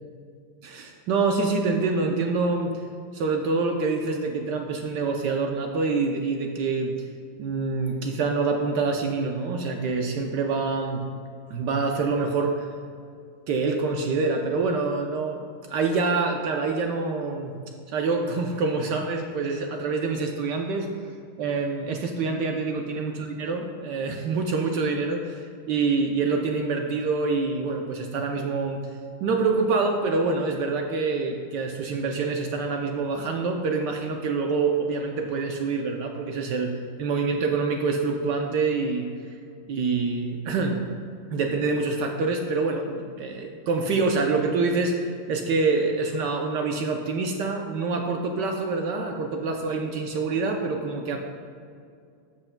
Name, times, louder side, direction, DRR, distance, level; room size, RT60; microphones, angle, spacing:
voice 1, 0.6-2.8 3.1-6.9 7.4-11.0 11.5-12.7 13.5-17.5 17.9-20.9 21.4-28.8 29.2-36.7 37.0-39.1 39.7-40.8 41.3-51.2, right 4 dB, 70° right, 3 dB, 1.1 m, -26 dB
13.0 x 7.8 x 2.2 m, 2.3 s
omnidirectional pair, 2.4 m